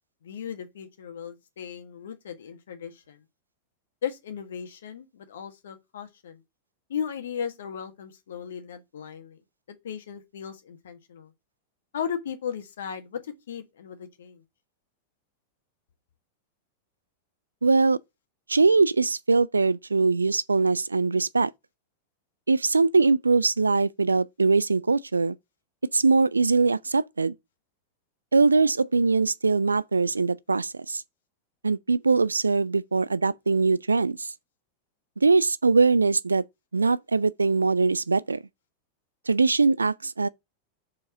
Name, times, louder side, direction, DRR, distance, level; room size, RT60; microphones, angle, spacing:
voice 1, 0.2-3.2 4.0-6.4 6.9-9.4 9.8-11.3 11.9-14.4, left 8 dB, 65° left, 1.5 m, -36 dB
voice 2, 17.6-18.0 18.5-21.5 22.5-25.4 25.9-27.3 28.3-31.0 31.6-34.3 35.2-36.4 36.7-38.4 39.3-40.3, right 4 dB, 80° right, 0.3 m, -22 dB
5.1 x 4.7 x 6.2 m
figure-of-eight pair, 90°, 0 cm